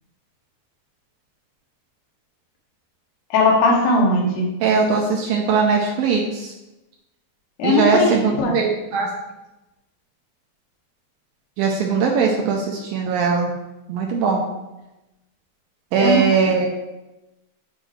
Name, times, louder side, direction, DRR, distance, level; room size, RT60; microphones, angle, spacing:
voice 1, 3.3-4.4 7.6-8.5 16.0-16.2, left 2 dB, 85° left, -1 dB, 3.3 m, -18 dB
voice 2, 4.6-6.5 7.6-9.1 11.6-13.5 13.9-14.4 15.9-16.7, right 5 dB, 80° right, 0 dB, 2.2 m, -20 dB
8.8 x 4.4 x 3.3 m, 0.97 s
omnidirectional pair, 4.7 m